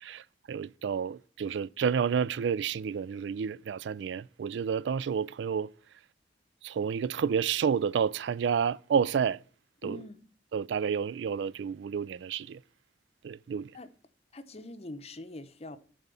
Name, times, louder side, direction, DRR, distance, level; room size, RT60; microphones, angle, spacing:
voice 1, 0.0-5.7 6.6-9.4 9.8-10.0 10.5-12.6 13.2-13.7, right 7 dB, 75° right, 0.3 m, -30 dB
voice 2, 9.8-10.2 13.7-13.9 14.3-15.8, left 2 dB, 35° left, 0.7 m, -43 dB
10.5 x 4.3 x 6.8 m
head